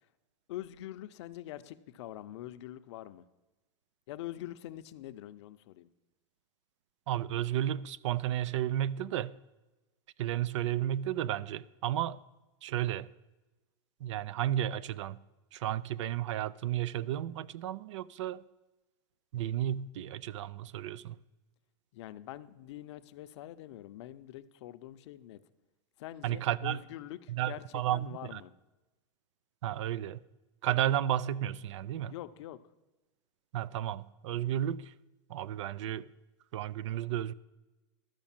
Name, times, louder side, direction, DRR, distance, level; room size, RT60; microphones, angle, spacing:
voice 1, 0.5-3.2 4.1-5.9 21.9-25.4 26.0-28.5 32.1-32.6, left 13 dB, 70° left, 0.6 m, -44 dB
voice 2, 7.1-9.3 10.2-12.2 12.6-13.1 14.0-15.2 15.5-18.4 19.3-21.1 26.2-26.8 27.3-28.4 29.6-30.2 30.6-32.1 33.5-34.9 35.3-36.1 36.5-37.3, right 12 dB, 75° right, 0.4 m, -33 dB
12.5 x 5.2 x 7.3 m
supercardioid pair, 145°, 15 cm